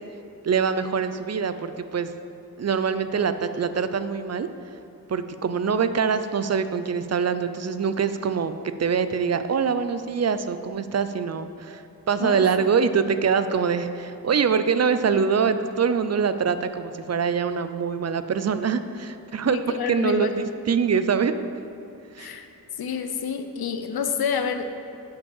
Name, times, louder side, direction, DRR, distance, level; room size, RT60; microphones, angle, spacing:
voice 1, 0.4-2.1 2.6-4.5 5.1-8.5 8.8-19.6 19.9-21.3 22.1-22.3, right 6 dB, 45° right, 11 dB, 0.4 m, -24 dB
voice 2, 12.2-12.5 19.4-20.4 22.2-22.5 22.8-24.8, left 6 dB, 85° left, 7 dB, 0.7 m, -28 dB
8.4 x 5.2 x 7.1 m, 2.8 s
wide cardioid pair, 120°, 36 cm